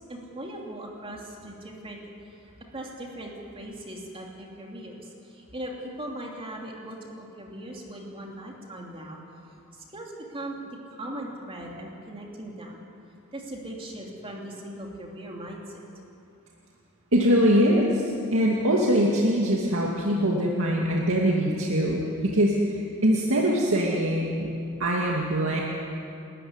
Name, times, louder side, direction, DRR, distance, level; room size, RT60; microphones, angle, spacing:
voice 1, 0.0-2.0 2.4-9.2 9.7-12.8 13.3-15.8, right 1 dB, 25° right, -1 dB, 2.9 m, -39 dB
voice 2, 17.1-24.5 24.8-25.6, equal, 70° right, -2 dB, 2.4 m, -23 dB
29.0 x 14.0 x 9.7 m, 2.7 s
head